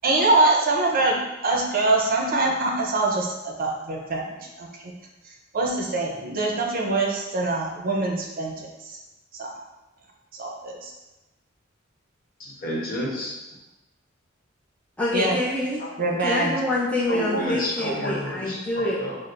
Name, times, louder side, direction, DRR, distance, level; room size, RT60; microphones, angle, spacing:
voice 1, 0.0-1.2 1.4-4.9 5.5-9.0 9.4-9.5 10.4-10.9 15.1-15.4 16.0-16.5, right 2 dB, 45° right, 0 dB, 0.6 m, -24 dB
voice 2, 12.4-13.4 17.1-19.2, equal, 45° left, -5 dB, 1.0 m, -30 dB
voice 3, 15.0-15.8 16.2-19.0, left 1 dB, 5° left, -9 dB, 0.5 m, -26 dB
6.1 x 2.1 x 2.5 m, 1.0 s
head